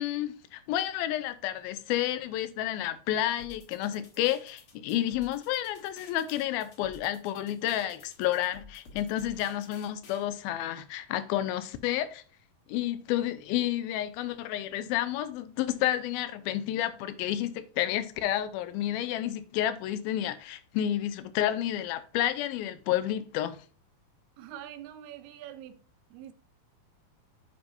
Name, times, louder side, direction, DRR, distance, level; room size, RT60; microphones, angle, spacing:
voice 1, 0.0-12.2 12.7-23.6, left 12 dB, 80° left, 2.4 m, -30 dB
sound 1, 3.4-10.2, left 3 dB, 50° left, 1.8 m, -53 dB
voice 2, 24.4-25.8 26.1-26.3, right 11 dB, 85° right, 2.8 m, -44 dB
9.7 x 5.1 x 2.6 m
omnidirectional pair, 4.4 m